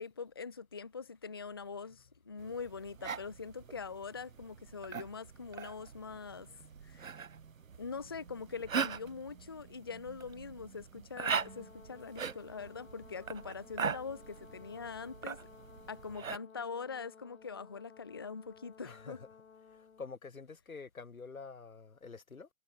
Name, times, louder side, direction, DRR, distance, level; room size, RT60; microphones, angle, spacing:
voice 1, 0.0-6.5 6.8-7.1 7.8-15.5 15.9-19.2, left 5 dB, 20° left, 0.4 m, -43 dB
sound 1, 2.4-16.4, right 6 dB, 75° right, 1.6 m, -41 dB
Brass instrument, 11.2-20.1, left 6 dB, 65° left, 5.5 m, -57 dB
voice 2, 18.8-19.3 20.0-22.5, left 4 dB, 80° left, 3.0 m, -47 dB
figure-of-eight pair, 140°, 41 cm